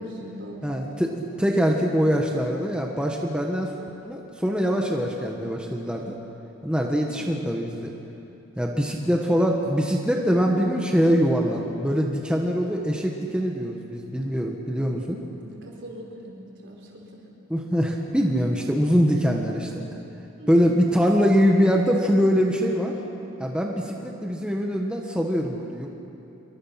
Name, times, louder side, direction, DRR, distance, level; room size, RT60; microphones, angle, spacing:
voice 1, 0.0-0.8 7.0-7.3 15.2-17.2 19.1-19.2 20.4-20.8, equal, 60° right, -1 dB, 4.6 m, -41 dB
voice 2, 0.6-3.7 4.0-6.1 6.6-7.9 8.6-15.2 17.5-19.8 20.5-22.9 23.4-25.9, equal, 5° right, 0 dB, 1.5 m, -23 dB
27.5 x 23.5 x 6.0 m, 2.8 s
head